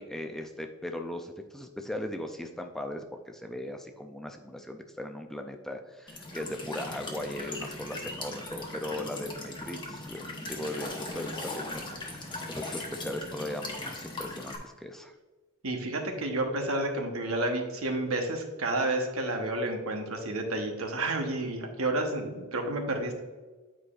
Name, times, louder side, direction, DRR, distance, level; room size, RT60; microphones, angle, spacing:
voice 1, 0.0-15.2, left 1 dB, ahead, 4 dB, 0.3 m, -38 dB
Walk footsteps / Chirp tweet / Stream, 6.1-14.6, left 2 dB, 20° left, 1.0 m, -39 dB
voice 2, 15.6-23.3, right 2 dB, 70° right, 3 dB, 1.1 m, -30 dB
9.0 x 4.9 x 2.5 m, 1.3 s
head